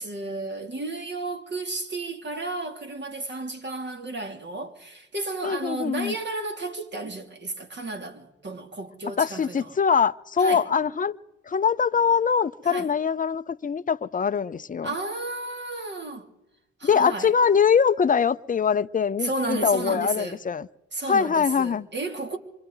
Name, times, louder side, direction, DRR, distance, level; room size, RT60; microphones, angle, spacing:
voice 1, 0.0-9.7 10.4-10.6 12.7-12.9 14.8-16.3 16.8-17.3 19.2-20.4 20.9-22.4, right 2 dB, 35° right, 2.8 m, -32 dB
voice 2, 5.4-6.1 9.2-11.2 11.5-14.9 16.8-20.7 21.1-21.9, left 6 dB, 25° left, 0.7 m, -23 dB
26.5 x 24.5 x 4.0 m
cardioid pair, 90°, 30 cm